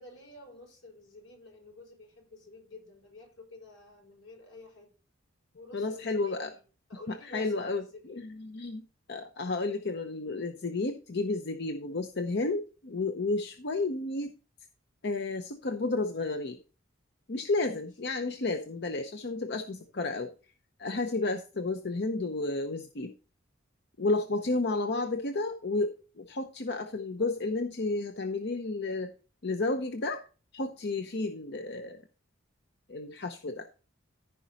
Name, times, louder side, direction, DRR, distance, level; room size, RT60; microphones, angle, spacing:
voice 1, 0.0-4.9 5.5-6.6 6.9-8.2 17.7-17.9 24.2-24.4, left 2 dB, 85° left, 2 dB, 5.0 m, -51 dB
voice 2, 5.7-6.5 7.3-7.8 8.1-8.8 9.1-14.3 15.0-16.6 17.3-20.3 20.8-23.1 24.0-29.1 29.4-30.2 30.5-32.0 32.9-33.7, left 3 dB, 55° left, 6 dB, 0.7 m, -32 dB
14.5 x 5.1 x 4.1 m, 0.37 s
head